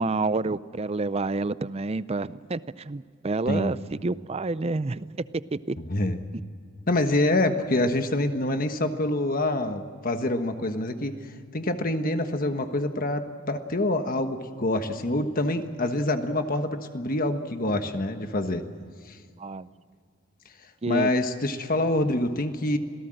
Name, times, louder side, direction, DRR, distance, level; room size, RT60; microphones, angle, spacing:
voice 1, 0.0-5.1 5.5-5.8 19.4-19.7 20.8-21.1, right 3 dB, 30° right, 16 dB, 0.5 m, -28 dB
voice 2, 5.8-6.2 6.9-11.1 11.5-18.6 19.1-19.2 20.9-22.8, left 1 dB, 40° left, 7 dB, 1.3 m, -26 dB
27.0 x 17.5 x 7.8 m, 2.2 s
head